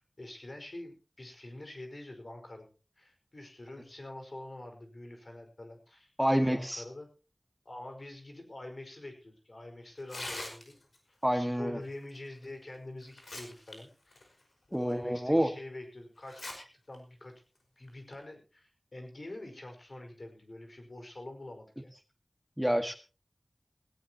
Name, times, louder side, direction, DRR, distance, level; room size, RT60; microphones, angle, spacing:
voice 1, 0.2-7.1 7.7-10.7 11.1-14.4 14.7-17.3 17.8-21.9, left 1 dB, 65° left, 4 dB, 5.2 m, -46 dB
voice 2, 6.2-6.8 11.2-11.8 14.7-15.5 22.6-23.0, equal, 5° right, 6 dB, 1.7 m, -28 dB
Tearing, 10.0-11.0 12.4-12.5 13.0-13.7 14.1-14.2 14.9-15.0 16.2-16.5 16.9-17.0 17.9-18.1, left 2 dB, 85° left, 5.3 m, -41 dB
18.0 x 17.0 x 3.0 m, 0.34 s
wide cardioid pair, 45°, 0 cm